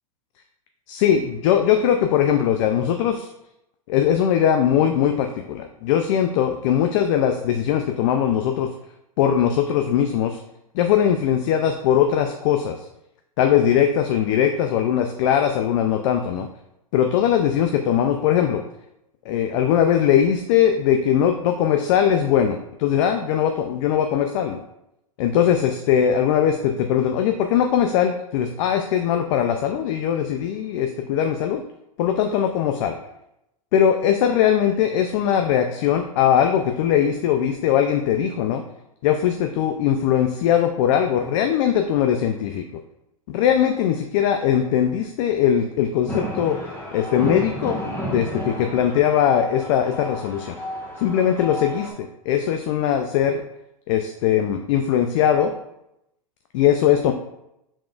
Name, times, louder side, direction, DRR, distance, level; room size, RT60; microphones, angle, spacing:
voice 1, 0.9-3.3 3.9-8.7 9.2-10.4 10.7-12.9 13.4-16.5 16.9-18.6 19.3-24.6 25.2-31.6 32.0-33.0 33.7-38.6 39.0-42.6 43.3-46.6 46.9-50.6 51.0-53.4 53.9-55.5 56.5-57.1, left 9 dB, 55° left, 5 dB, 0.4 m, -20 dB
sound 1, 46.1-51.9, equal, 10° left, 1.3 m, -31 dB
4.9 x 3.6 x 2.5 m, 0.84 s
hypercardioid pair, 115°, 19 cm